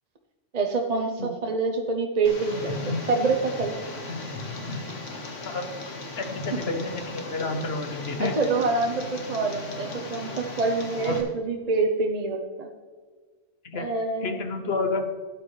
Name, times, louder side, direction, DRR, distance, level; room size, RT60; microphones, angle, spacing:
voice 1, 0.5-3.7 8.2-12.7 13.7-14.4, right 3 dB, 40° right, 3 dB, 0.7 m, -26 dB
Tick, 2.2-11.2, left 2 dB, 75° left, 1.9 m, -36 dB
voice 2, 6.2-8.5 11.0-11.2 13.6-13.9 14.2-15.0, left 3 dB, 55° left, 6 dB, 1.1 m, -30 dB
12.5 x 9.5 x 3.2 m, 1.5 s
omnidirectional pair, 1.3 m